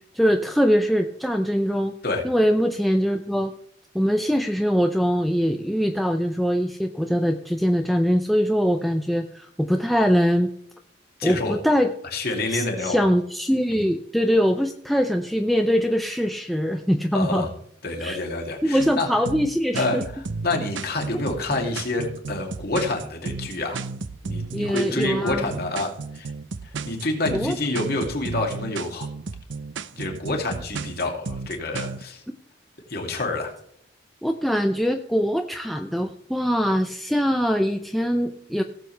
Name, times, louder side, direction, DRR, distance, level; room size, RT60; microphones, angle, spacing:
voice 1, 0.1-1.9 2.2-3.5 3.9-10.5 11.2-11.9 12.5-17.5 18.0-18.2 18.6-20.0 24.5-25.4 27.3-27.6 34.2-38.6, equal, ahead, 5 dB, 0.5 m, -22 dB
voice 2, 11.2-11.6 12.1-13.0 17.1-17.5 17.8-19.1 19.7-23.8 24.2-26.3 26.6-29.1 29.9-32.2 32.9-33.5, left 2 dB, 55° left, 2 dB, 2.6 m, -28 dB
sound 1, 18.8-32.0, right 4 dB, 75° right, 0.6 m, -33 dB
17.0 x 7.5 x 3.4 m, 0.68 s
head